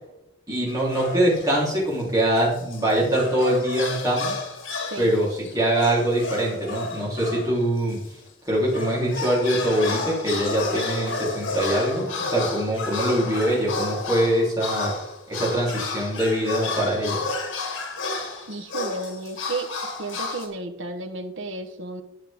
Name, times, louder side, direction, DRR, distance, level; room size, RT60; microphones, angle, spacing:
voice 1, 0.5-4.3 5.0-8.0 8.4-14.9 15.3-17.2, right 1 dB, 20° right, -6 dB, 3.4 m, -23 dB
sound 1, 0.7-1.6 2.0-8.1 8.5-20.5, left 3 dB, 85° left, 1.8 m, -32 dB
voice 2, 18.5-19.7 20.0-22.0, right 2 dB, 80° right, 7 dB, 1.0 m, -32 dB
9.9 x 7.5 x 3.6 m, 0.82 s
head